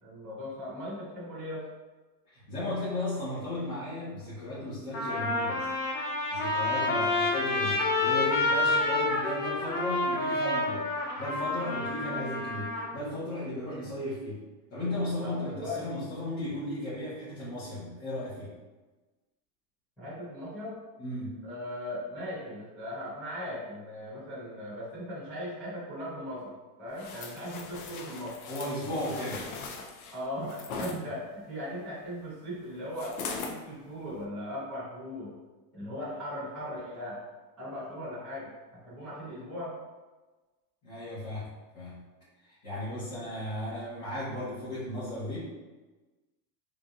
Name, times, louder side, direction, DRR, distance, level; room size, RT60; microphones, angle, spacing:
voice 1, 0.0-1.7 6.7-7.1 15.2-16.0 20.0-20.8 21.4-28.4 30.1-33.2 33.5-35.3 35.7-37.2 37.6-39.7, left 1 dB, 5° left, -16 dB, 0.4 m, -38 dB
voice 2, 2.3-5.7 6.3-10.9 11.2-14.4 14.7-18.5 21.0-21.4 28.5-29.5 40.8-41.5 41.7-42.0 42.4-45.4, left 1 dB, 35° left, -13 dB, 1.3 m, -35 dB
Trumpet, 4.2-4.3 4.9-12.9, left 2 dB, 85° left, 1.0 m, -29 dB
sound 1, 27.0-31.0 33.0-33.6 34.1-34.2, left 4 dB, 60° left, 0.6 m, -40 dB
3.7 x 2.7 x 2.4 m, 1.2 s
supercardioid pair, 170°, 49 cm